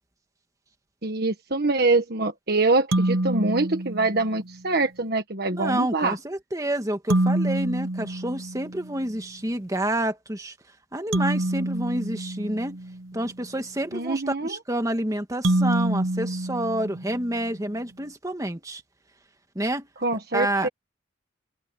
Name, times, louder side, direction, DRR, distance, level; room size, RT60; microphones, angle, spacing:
voice 1, 1.0-6.2 13.9-14.6 20.0-20.7, right 3 dB, 50° right, 1.5 m, -24 dB
sound 1, 2.9-4.6 7.1-9.1 11.1-13.3 15.4-17.5, right 1 dB, 90° right, 1.0 m, -27 dB
voice 2, 5.5-10.5 10.9-12.8 13.1-18.8 19.6-19.9 20.3-20.7, right 1 dB, 15° right, 1.9 m, -28 dB
head